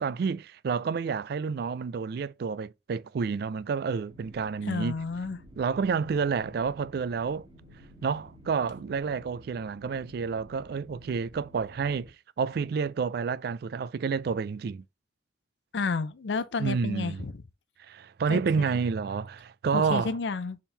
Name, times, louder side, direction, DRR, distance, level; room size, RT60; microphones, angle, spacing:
voice 1, 0.0-4.9 5.6-7.5 8.0-12.1 12.4-14.8 16.6-17.3 17.8-20.1, right 5 dB, 60° right, 0.3 m, -29 dB
sound 1, 4.1-12.1, equal, 30° right, 1.5 m, -52 dB
voice 2, 4.6-5.4 15.7-17.4 18.3-18.8 19.7-20.6, left 4 dB, 75° left, 0.5 m, -31 dB
4.4 x 3.6 x 3.2 m
head